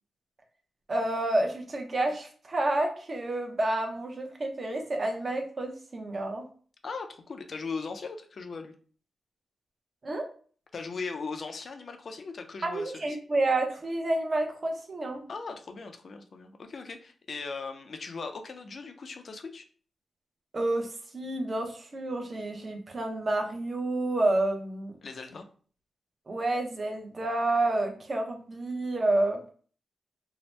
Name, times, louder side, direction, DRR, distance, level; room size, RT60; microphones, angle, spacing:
voice 1, 0.9-6.4 10.0-10.3 12.6-15.2 20.5-20.9 21.1-24.9 26.3-29.4, right 2 dB, 35° right, 3 dB, 0.6 m, -29 dB
voice 2, 6.8-8.7 10.7-13.2 15.3-19.6 25.0-25.5, left 4 dB, 50° left, 6 dB, 0.4 m, -39 dB
2.7 x 2.0 x 3.1 m, 0.43 s
wide cardioid pair, 130°, 0 cm